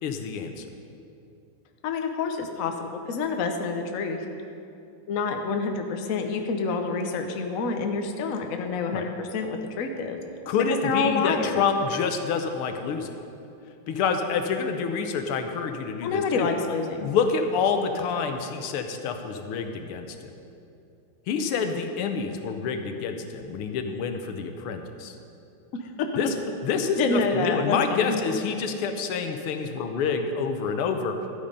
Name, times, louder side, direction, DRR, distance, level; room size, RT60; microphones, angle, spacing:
voice 1, 0.0-0.7 8.9-9.1 10.5-13.2 13.9-16.5 17.0-20.3 21.3-25.1 26.2-26.3 26.6-31.2, left 5 dB, 85° left, 6 dB, 1.7 m, -27 dB
voice 2, 1.8-4.3 5.1-10.2 10.8-11.6 16.0-17.1 25.8-26.1 27.0-28.2, left 4 dB, 55° left, 4 dB, 1.0 m, -28 dB
13.0 x 8.7 x 5.2 m, 2.7 s
omnidirectional pair, 2.4 m